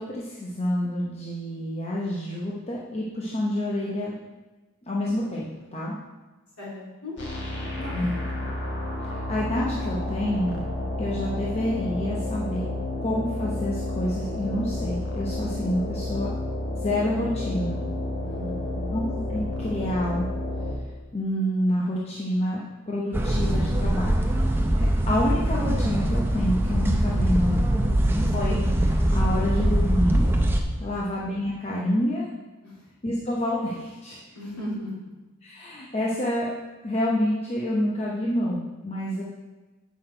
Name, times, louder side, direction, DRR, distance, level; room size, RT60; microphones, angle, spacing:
voice 1, 0.0-4.2 4.9-5.5 5.7-6.0 7.9-8.1 9.0-10.7 11.0-12.7 13.0-16.3 16.8-17.8 18.9-20.3 21.1-22.6 22.9-24.1 25.1-27.6 28.3-30.3 30.8-32.3 33.0-34.2 35.4-36.5 36.8-39.2, left 1 dB, 30° left, -4 dB, 0.9 m, -28 dB
voice 2, 6.6-7.1 7.6-8.0 18.2-19.0 30.8-31.0 32.6-32.8 34.3-35.1, left 1 dB, 90° left, -6 dB, 3.0 m, -37 dB
sound 1, 7.2-20.7, left 1 dB, 55° left, 1.5 m, -31 dB
sound 2, 23.1-30.6, right 1 dB, 10° right, 0.6 m, -22 dB
8.3 x 5.9 x 4.5 m, 1.2 s
head